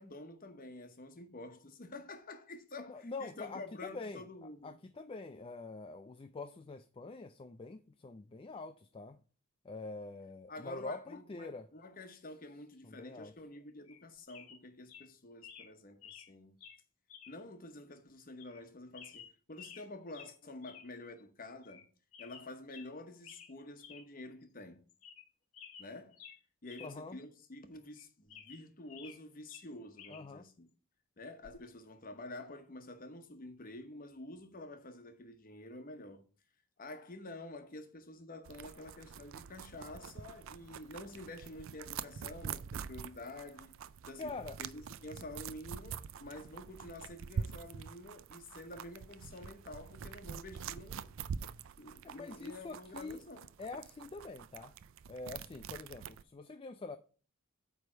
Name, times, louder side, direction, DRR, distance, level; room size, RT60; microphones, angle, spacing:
voice 1, 0.0-4.8 10.5-16.6 17.3-21.9 22.2-24.9 25.8-26.2 26.6-30.7 31.2-36.2 36.8-43.7 44.1-44.3 44.6-51.1 51.8-53.5, left 2 dB, 40° left, 1.0 m, -49 dB
voice 2, 2.9-9.2 9.6-11.7 12.8-13.3 26.8-27.2 30.1-30.5 44.2-44.6 52.0-53.2 53.6-54.7 55.1-57.0, left 3 dB, 25° left, 0.3 m, -45 dB
sound 1, 13.9-14.0 14.3-14.6 14.9-15.1 15.4-15.7 16.0-16.3 16.6-16.8 17.1-17.4 17.7-17.8 18.4-18.6 18.9-19.9 20.1-20.3 20.6-20.9 21.2-21.3 21.6-21.8 22.1-22.9 23.2-23.5 23.8-24.0 24.4-24.5 24.9-25.3 25.5-26.9 27.2-27.3 27.9-29.2 29.5-30.2 31.4-31.7, left 7 dB, 80° left, 1.1 m, -53 dB
sound 2, 38.5-56.2, right 7 dB, 60° right, 0.4 m, -45 dB
8.9 x 3.4 x 6.0 m
head